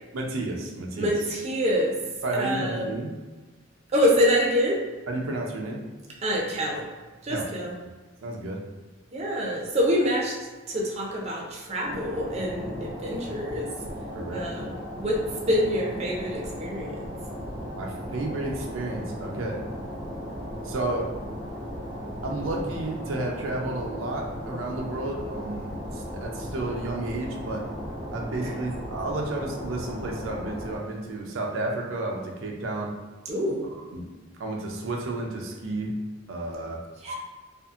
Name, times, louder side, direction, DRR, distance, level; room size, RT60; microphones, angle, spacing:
voice 1, 0.1-1.1 2.2-3.1 5.1-5.8 7.3-7.5 8.2-8.7 14.1-14.5 17.7-19.6 20.6-21.1 22.2-27.7 28.1-32.9 33.9-34.1 34.4-36.0 36.3-36.8, right 2 dB, 90° right, 0 dB, 0.5 m, -31 dB
voice 2, 1.0-2.0 2.3-2.9 3.9-4.8 6.2-6.9 7.2-7.7 9.1-13.7 14.3-17.0 28.4-28.5 33.3-33.7 37.0-37.1, equal, 35° right, -2 dB, 0.5 m, -26 dB
sound 1, 11.8-30.8, equal, 40° left, 0.8 m, -36 dB
2.6 x 2.4 x 2.4 m, 1.3 s
head